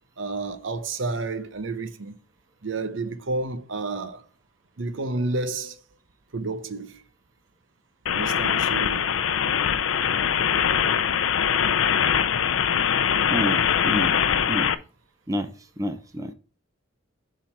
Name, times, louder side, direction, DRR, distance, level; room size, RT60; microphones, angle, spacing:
voice 1, 0.2-2.1 2.6-4.2 4.8-5.8 6.3-7.0 8.1-9.2, right 3 dB, 70° right, 0.8 m, -30 dB
sound 1, 8.1-14.7, left 8 dB, 85° left, 0.5 m, -22 dB
voice 2, 13.3-14.2 14.5-14.7 15.3-16.3, equal, 15° right, 0.7 m, -29 dB
7.2 x 3.9 x 5.8 m
head